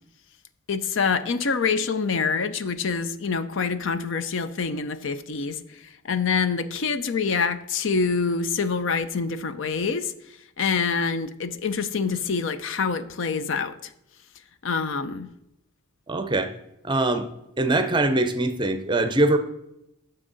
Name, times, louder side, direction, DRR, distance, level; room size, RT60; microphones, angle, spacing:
voice 1, 0.7-10.1 10.6-13.8 14.6-15.3, left 5 dB, 60° left, 13 dB, 0.5 m, -26 dB
voice 2, 16.1-16.5 16.8-17.3 17.6-19.4, right 2 dB, 20° right, 9 dB, 0.6 m, -22 dB
9.8 x 6.6 x 4.0 m, 0.86 s
head